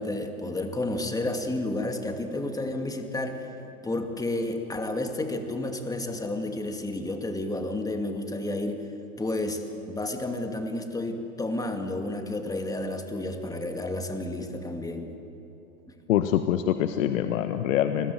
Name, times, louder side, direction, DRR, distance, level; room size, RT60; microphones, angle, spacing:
voice 1, 0.0-3.5 3.8-8.8 9.2-15.1, left 2 dB, 10° left, 5 dB, 2.4 m, -31 dB
voice 2, 16.1-18.1, left 11 dB, 60° left, 9 dB, 1.2 m, -25 dB
28.5 x 21.0 x 7.8 m, 3.0 s
hypercardioid pair, 100°, 44 cm